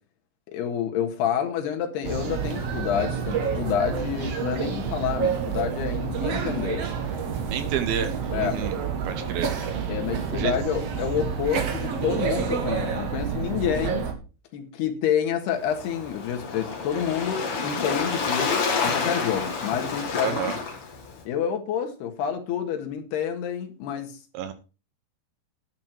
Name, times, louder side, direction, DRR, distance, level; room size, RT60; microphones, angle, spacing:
voice 1, 0.5-6.9 8.3-8.6 9.9-14.1 14.5-20.4 21.3-24.2, left 8 dB, 70° left, 3.5 m, -28 dB
sound 1, 2.0-14.1, right 6 dB, 55° right, 1.9 m, -28 dB
voice 2, 7.5-8.8 9.1-9.5 10.3-10.5 20.2-20.6 24.3-24.5, right 9 dB, 75° right, 2.3 m, -30 dB
Waves surf, 15.5-21.2, left 4 dB, 45° left, 2.1 m, -29 dB
9.8 x 9.3 x 4.6 m
omnidirectional pair, 5.0 m